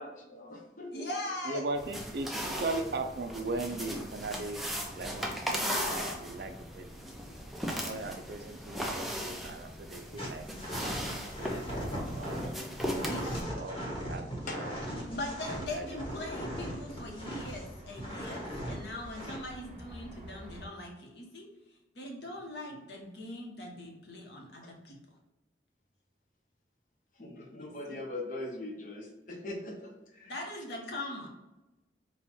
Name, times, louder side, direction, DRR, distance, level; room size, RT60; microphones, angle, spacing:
voice 1, 0.0-1.1 14.5-15.0 22.7-22.8 24.6-24.7 27.2-30.4, left 2 dB, 45° left, 1 dB, 0.8 m, -42 dB
voice 2, 0.9-1.6 13.1-13.4 15.1-21.5 21.9-25.0 27.6-28.0 30.3-31.3, left 1 dB, 70° left, 0 dB, 1.0 m, -41 dB
voice 3, 1.5-4.6 5.0-7.2 7.8-10.5 10.9-11.1 11.4-12.4 13.5-14.7 15.5-16.0, right 2 dB, 60° right, 6 dB, 0.4 m, -38 dB
sound 1, 1.8-13.4, equal, ahead, 0.4 m, -37 dB
sound 2, 10.2-17.6 18.0-18.7 19.1-19.4, equal, 25° left, 1.1 m, -38 dB
sound 3, 14.7-20.7, equal, 30° right, 1.2 m, -49 dB
4.2 x 2.3 x 4.3 m, 1.0 s
head